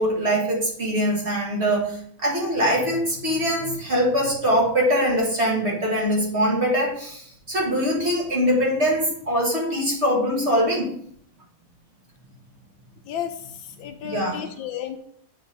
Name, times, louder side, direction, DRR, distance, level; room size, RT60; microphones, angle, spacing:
voice 1, 0.0-10.9 14.0-14.4, equal, 35° right, -3 dB, 1.8 m, -23 dB
voice 2, 13.1-13.4 13.8-15.0, left 9 dB, 75° left, 7 dB, 1.4 m, -32 dB
8.1 x 3.9 x 4.0 m, 0.64 s
omnidirectional pair, 2.2 m